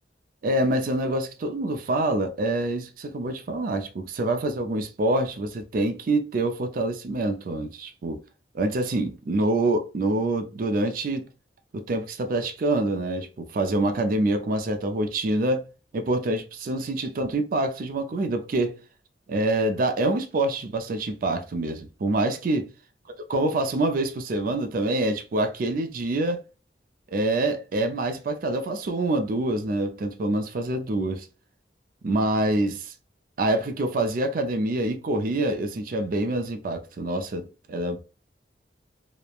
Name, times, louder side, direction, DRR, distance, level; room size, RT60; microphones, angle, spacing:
voice 1, 0.4-8.2 8.5-11.3 11.7-15.6 15.9-18.8 19.3-22.7 23.3-26.4 27.1-31.3 32.0-32.9 33.4-38.0, right 2 dB, 50° right, 0.4 m, -26 dB
3.0 x 2.0 x 2.3 m
head